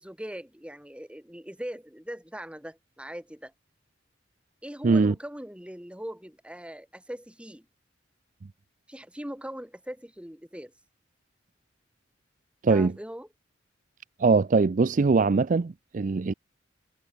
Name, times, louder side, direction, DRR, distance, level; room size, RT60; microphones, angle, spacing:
voice 1, 0.0-3.5 4.6-7.7 8.9-10.7 12.7-13.3, equal, 5° right, 2.2 m, -40 dB
voice 2, 4.8-5.1 12.6-12.9 14.2-16.3, right 4 dB, 45° right, 0.4 m, -22 dB
head